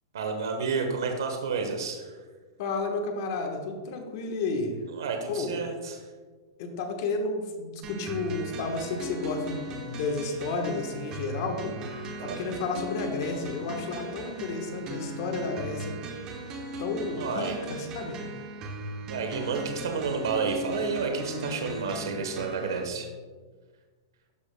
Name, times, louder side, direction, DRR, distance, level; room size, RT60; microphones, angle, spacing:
voice 1, 0.1-2.1 5.0-6.0 12.2-12.4 17.2-17.6 19.1-23.1, right 5 dB, 80° right, 4 dB, 0.9 m, -30 dB
voice 2, 2.6-4.7 5.3-5.5 6.6-11.8 12.2-16.0 16.8-18.2, left 3 dB, 55° left, 4 dB, 1.1 m, -32 dB
sound 1, 7.8-22.8, right 1 dB, 30° right, 1.1 m, -38 dB
12.5 x 4.9 x 2.2 m, 1.4 s
hypercardioid pair, 135°, 2 cm